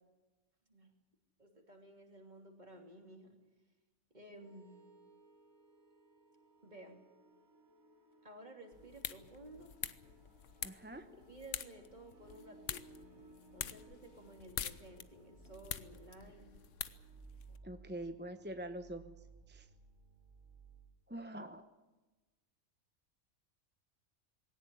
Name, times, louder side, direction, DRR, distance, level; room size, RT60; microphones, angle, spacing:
voice 1, 1.4-3.4 4.1-4.7 6.6-7.0 8.2-9.7 11.2-13.0 13.5-16.5, right 1 dB, 30° right, 3 dB, 3.2 m, -54 dB
sound 1, 4.4-20.9, right 3 dB, 80° right, 3.8 m, -61 dB
sound 2, 8.7-17.6, left 8 dB, 65° left, 1.3 m, -46 dB
voice 2, 10.6-11.1 17.6-19.2 19.5-19.7 21.1-21.6, right 1 dB, 10° right, 8 dB, 0.8 m, -45 dB
20.0 x 17.5 x 10.0 m, 1.2 s
omnidirectional pair, 1.4 m